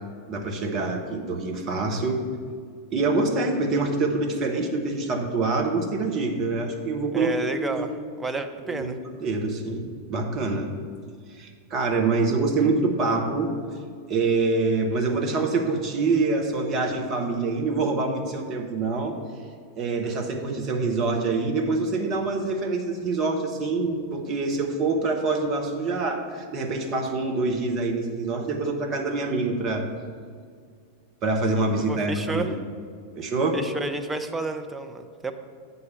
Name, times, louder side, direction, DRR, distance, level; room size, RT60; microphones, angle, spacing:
voice 1, 0.3-2.2 2.9-7.8 8.7-10.7 11.4-13.5 14.1-19.1 19.8-29.9 31.2-32.5 33.2-33.6, right 3 dB, 35° right, 3 dB, 1.1 m, -25 dB
voice 2, 7.1-7.9 8.2-9.0 31.7-32.5 33.5-35.3, right 3 dB, 10° right, 5 dB, 0.6 m, -30 dB
8.2 x 4.1 x 7.0 m, 2.1 s
figure-of-eight pair, 90°, 0 cm